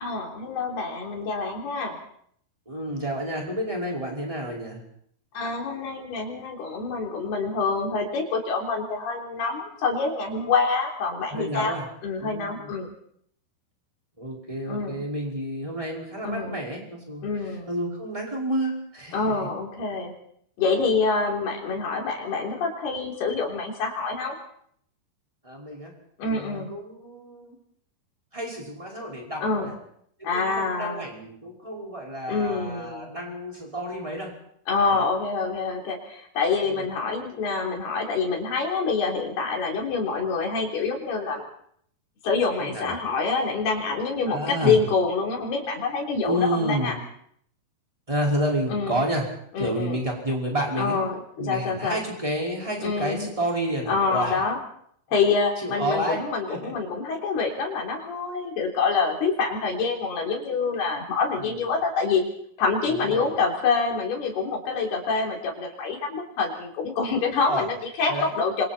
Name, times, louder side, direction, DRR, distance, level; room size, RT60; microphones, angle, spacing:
voice 1, 0.0-2.0 5.3-11.8 12.0-12.9 14.7-15.0 16.2-16.6 17.2-17.7 19.1-20.1 20.6-24.4 26.2-26.7 29.4-29.7 30.2-31.1 32.3-33.2 34.7-41.4 42.2-47.0 48.7-49.0 49.5-50.0 50.8-52.0 52.8-53.3 53.9-54.6 55.1-62.2 62.6-68.7, left 4 dB, 75° left, 0 dB, 5.7 m, -26 dB
voice 2, 2.6-4.8 11.3-11.9 12.2-12.7 14.2-17.2 17.7-19.5 25.4-25.9 26.2-27.5 28.3-29.7 30.2-34.3 34.9-35.1 42.6-42.9 44.3-44.8 46.2-46.9 48.1-49.2 49.6-51.0 51.4-54.4 55.6-56.2 56.5-56.7 61.4-61.7 62.9-63.3 67.5-67.6 68.1-68.3, right 1 dB, 10° right, -2 dB, 5.1 m, -30 dB
27.0 x 25.0 x 4.4 m, 0.67 s
omnidirectional pair, 4.6 m